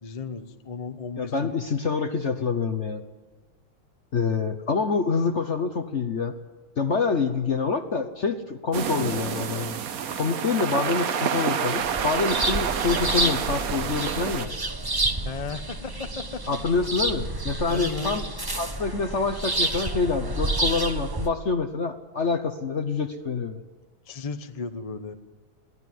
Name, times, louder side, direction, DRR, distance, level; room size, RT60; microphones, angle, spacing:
voice 1, 0.0-1.6 15.2-16.4 17.7-18.2 24.1-25.1, left 4 dB, 30° left, 8 dB, 0.6 m, -35 dB
voice 2, 1.2-3.0 4.1-6.3 6.8-9.8 10.1-14.5 16.5-18.2 18.5-23.6, left 4 dB, 45° left, 8 dB, 1.0 m, -26 dB
sound 1, 8.7-14.5, right 7 dB, 55° right, 1.1 m, -28 dB
sound 2, 11.8-21.3, right 2 dB, 25° right, 0.5 m, -29 dB
22.5 x 16.0 x 9.3 m, 1.2 s
omnidirectional pair, 2.3 m